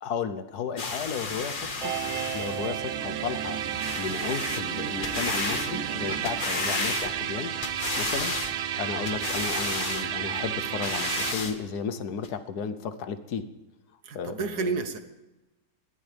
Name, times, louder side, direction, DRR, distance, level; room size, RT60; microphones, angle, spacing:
voice 1, 0.0-1.9 2.3-7.5 8.0-8.3 8.8-13.4 14.1-14.8, left 6 dB, 80° left, 11 dB, 1.5 m, -34 dB
sound 1, 0.8-2.7 3.8-4.6 5.0-5.7 6.1-7.3 7.6-8.5 9.0-10.1 10.6-11.6 12.2-12.3, left 4 dB, 35° left, 1.2 m, -32 dB
sound 2, 1.3-6.8, right 5 dB, 45° right, 4.3 m, -41 dB
sound 3, 1.8-11.3, right 10 dB, 65° right, 0.6 m, -32 dB
voice 2, 14.0-15.0, right 4 dB, 85° right, 9 dB, 1.8 m, -30 dB
21.5 x 17.0 x 3.5 m, 1.0 s
omnidirectional pair, 1.7 m